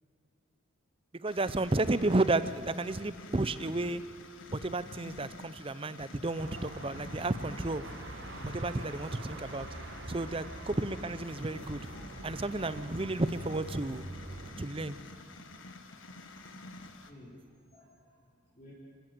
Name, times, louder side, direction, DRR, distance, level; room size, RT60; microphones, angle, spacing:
voice 1, 1.2-4.0 4.5-7.9 8.4-9.7 10.1-11.8 12.2-14.1 14.6-15.0, right 2 dB, 25° right, 14 dB, 0.6 m, -32 dB
sound 1, 1.3-17.1, left 2 dB, 65° left, 1.6 m, -49 dB
Car passing by / Traffic noise roadway noise / Engine, 6.4-14.5, right 1 dB, 55° right, 2.0 m, -44 dB
voice 2, 17.0-18.7, left 1 dB, 35° left, -8 dB, 4.4 m, -57 dB
27.0 x 15.5 x 7.9 m, 2.2 s
head